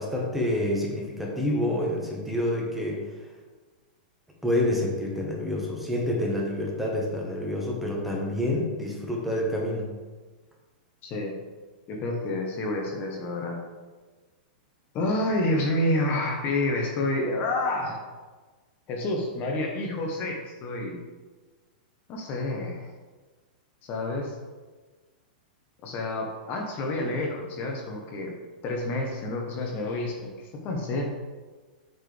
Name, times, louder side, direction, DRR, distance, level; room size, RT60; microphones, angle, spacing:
voice 1, 0.0-3.1 4.4-9.9, left 1 dB, 5° right, -3 dB, 1.4 m, -28 dB
voice 2, 11.0-11.3 11.9-13.6 14.9-18.0 18.9-21.0 22.1-22.9 23.8-24.4 25.8-28.3 28.6-31.1, left 2 dB, 35° left, 1 dB, 1.2 m, -29 dB
7.7 x 4.6 x 3.4 m, 1.3 s
hypercardioid pair, 135°, 5 cm